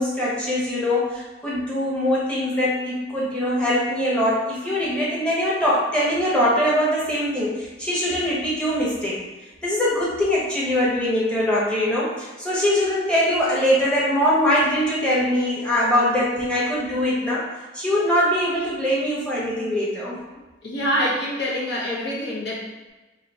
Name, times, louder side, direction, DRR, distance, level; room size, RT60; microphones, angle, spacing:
voice 1, 0.0-9.2 9.6-17.4 17.7-20.2, left 1 dB, 5° left, -7 dB, 1.1 m, -22 dB
voice 2, 20.6-22.9, equal, 60° left, -5 dB, 1.0 m, -26 dB
3.0 x 2.9 x 4.1 m, 1.2 s
head